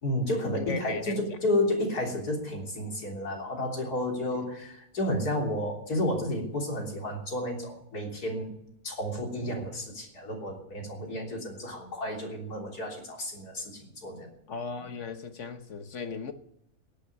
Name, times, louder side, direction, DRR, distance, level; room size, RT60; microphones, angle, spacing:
voice 1, 0.0-8.5 8.8-14.3, left 1 dB, 90° left, 3.8 m, -31 dB
voice 2, 0.5-1.4 14.5-16.3, left 5 dB, 55° left, 1.3 m, -37 dB
17.0 x 8.7 x 8.3 m
omnidirectional pair, 1.6 m